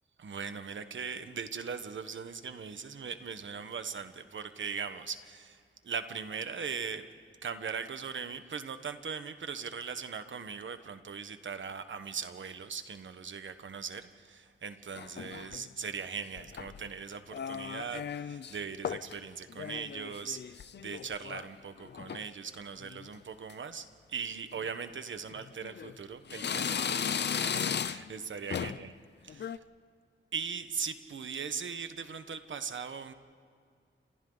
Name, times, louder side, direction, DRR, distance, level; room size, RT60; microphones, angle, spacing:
voice 1, 0.2-7.1 7.4-28.9 29.3-29.6 30.3-33.1, right 6 dB, 70° right, 9 dB, 1.3 m, -40 dB
sound 1, 15.0-15.7 16.4-16.9 17.3-18.6 18.8-19.2 19.5-21.5 21.8-22.3 22.8-23.2 23.5-23.6 24.5-24.7 25.3-26.0 26.3-28.2 28.5-28.9 29.3-29.6, left 7 dB, 60° left, 0.5 m, -36 dB
30.0 x 27.0 x 4.0 m, 2.3 s
wide cardioid pair, 160°, 21 cm